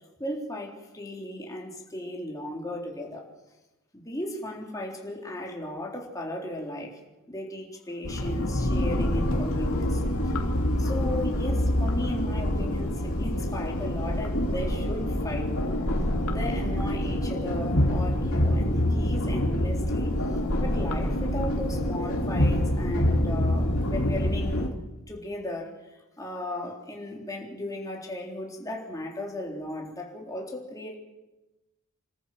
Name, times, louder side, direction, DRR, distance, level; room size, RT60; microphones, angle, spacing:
voice 1, 0.2-3.2 3.9-7.0 7.3-10.3 10.8-15.6 16.3-20.2 20.6-24.7 25.1-30.9, left 1 dB, 15° left, -1 dB, 3.7 m, -36 dB
sound 1, 8.0-24.7, left 1 dB, 70° left, 2.5 m, -26 dB
27.0 x 14.0 x 7.8 m, 1.1 s
head